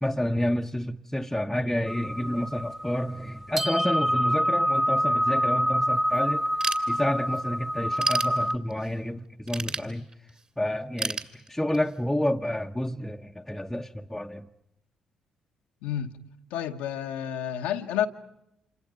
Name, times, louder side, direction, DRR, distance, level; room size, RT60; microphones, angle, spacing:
voice 1, 0.0-6.5 6.9-10.1 10.6-14.5, left 1 dB, 5° left, 0.9 m, -29 dB
sound 1, 1.9-8.6, equal, 15° right, 1.1 m, -26 dB
Ratchet pawl / Tools, 6.6-7.4 7.8-8.9 9.5-10.4 11.0-12.0, right 3 dB, 40° right, 2.5 m, -31 dB
voice 2, 15.8-16.2 16.5-18.1, left 10 dB, 75° left, 1.0 m, -30 dB
30.0 x 27.5 x 5.2 m
hypercardioid pair, 45°, 3 cm